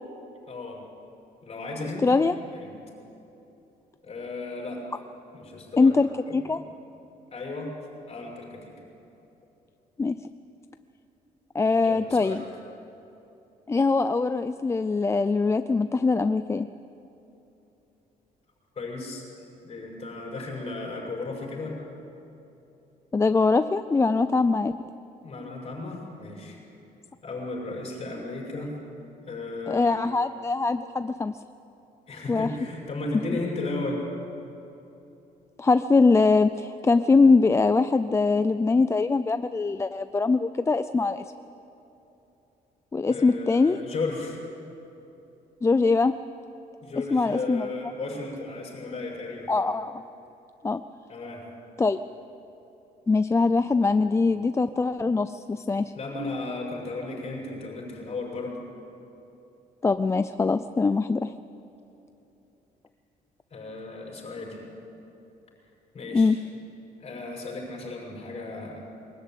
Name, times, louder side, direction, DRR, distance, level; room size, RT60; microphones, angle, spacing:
voice 1, 0.5-0.8 1.4-2.2 2.5-2.7 4.0-4.8 5.3-6.0 6.3-6.6 7.3-7.7 8.1-8.6 11.8-12.4 18.7-19.2 19.6-21.8 25.2-26.6 27.2-28.7 29.3-30.1 32.1-34.0 43.1-44.4 46.8-49.5 51.1-51.5 55.9-58.6 63.5-64.6 65.9-66.4 67.0-68.8, left 3 dB, 40° left, -1 dB, 6.5 m, -35 dB
voice 2, 2.0-2.3 5.8-6.6 10.0-10.2 11.5-12.4 13.7-16.7 23.1-24.7 29.7-31.4 32.3-32.5 35.6-41.2 42.9-43.8 45.6-46.1 47.1-47.7 49.5-50.0 50.6-50.8 51.8-52.0 53.1-55.9 59.8-61.3 66.1-66.4, left 3 dB, 15° left, 11 dB, 0.4 m, -22 dB
22.5 x 13.5 x 9.1 m, 3.0 s
cardioid pair, 110°, 16 cm